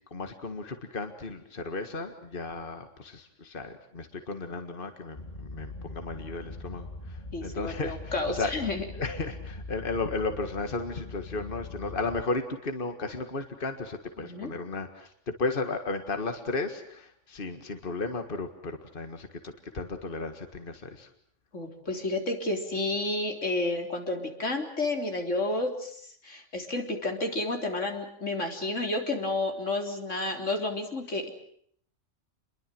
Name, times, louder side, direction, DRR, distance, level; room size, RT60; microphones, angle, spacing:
voice 1, 0.1-8.5 8.9-21.1, left 3 dB, 45° left, 7 dB, 2.0 m, -34 dB
sound 1, 5.1-12.2, left 3 dB, 30° left, 2.1 m, -42 dB
voice 2, 7.3-8.8 14.2-14.5 21.5-31.3, left 2 dB, 85° left, 3 dB, 4.1 m, -31 dB
28.5 x 22.5 x 7.7 m, 0.64 s
omnidirectional pair, 1.2 m